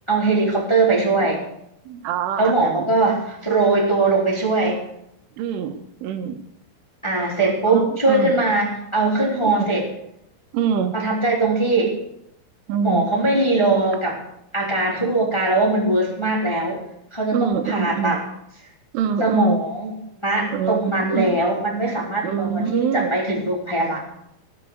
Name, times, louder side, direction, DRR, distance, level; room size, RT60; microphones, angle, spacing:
voice 1, 0.1-1.4 2.4-4.8 7.0-9.8 10.9-11.9 12.8-14.2 14.5-16.8 17.1-18.2 19.2-19.9 20.2-24.0, right 2 dB, 10° left, -2 dB, 2.2 m, -21 dB
voice 2, 1.9-2.9 5.4-6.4 7.2-8.4 9.5-9.8 10.5-11.0 12.7-13.1 17.3-18.2 18.9-19.6 20.5-21.4 22.2-23.2, right 7 dB, 80° right, 6 dB, 3.7 m, -25 dB
18.0 x 7.6 x 8.0 m, 0.79 s
omnidirectional pair, 5.5 m